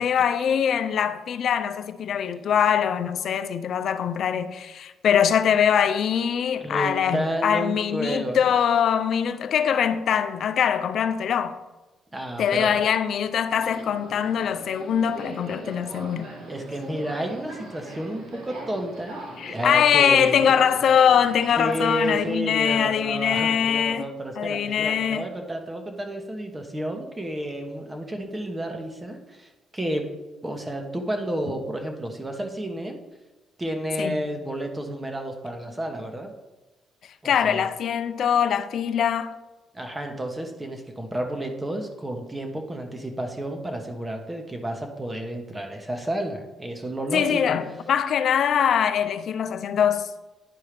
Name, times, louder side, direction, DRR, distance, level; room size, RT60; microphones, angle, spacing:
voice 1, 0.0-11.6 12.4-16.3 19.4-24.1 24.4-25.2 34.0-34.2 37.2-39.3 47.1-50.1, left 8 dB, 65° left, 0.5 m, -23 dB
voice 2, 6.6-8.4 12.1-12.8 16.5-19.2 19.5-20.5 21.6-30.1 30.4-33.0 33.6-36.3 37.2-37.7 39.7-47.6, right 1 dB, 20° right, 1.1 m, -31 dB
Subway metro underground, 13.4-22.3, right 1 dB, 90° right, 1.9 m, -41 dB
10.5 x 4.6 x 3.3 m
cardioid pair, 90°, 0 cm